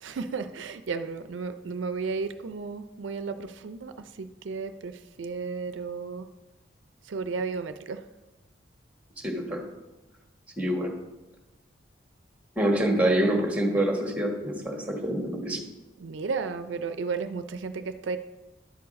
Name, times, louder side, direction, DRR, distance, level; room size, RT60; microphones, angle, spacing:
voice 1, 0.0-6.3 7.0-8.0 16.0-18.2, right 4 dB, 75° right, 10 dB, 0.4 m, -33 dB
voice 2, 9.2-9.6 10.6-11.0 12.6-15.6, right 1 dB, 10° right, 1 dB, 1.3 m, -26 dB
11.0 x 4.7 x 5.2 m, 1.1 s
head